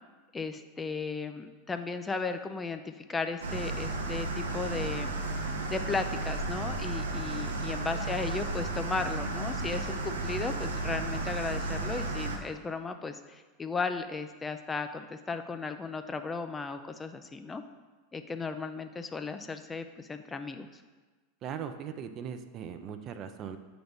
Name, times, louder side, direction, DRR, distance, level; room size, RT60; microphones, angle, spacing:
voice 1, 0.3-5.1 5.7-17.6 18.1-20.8, left 4 dB, 20° left, 8 dB, 0.4 m, -35 dB
sound 1, 3.4-12.4, right 2 dB, 90° right, 0.7 m, -33 dB
voice 2, 21.4-23.6, right 8 dB, 40° right, 8 dB, 0.5 m, -39 dB
7.7 x 4.0 x 3.5 m, 1.3 s
hypercardioid pair, 100°, 0 cm